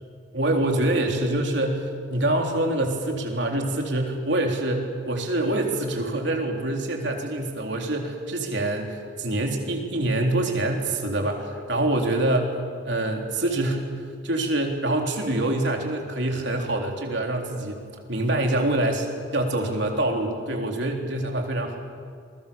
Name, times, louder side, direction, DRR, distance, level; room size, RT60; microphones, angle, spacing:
voice 1, 0.3-12.6 12.8-13.9 14.2-17.8 18.1-19.1 19.3-21.8, right 1 dB, 60° right, 2 dB, 3.8 m, -25 dB
28.5 x 22.0 x 7.1 m, 2.2 s
head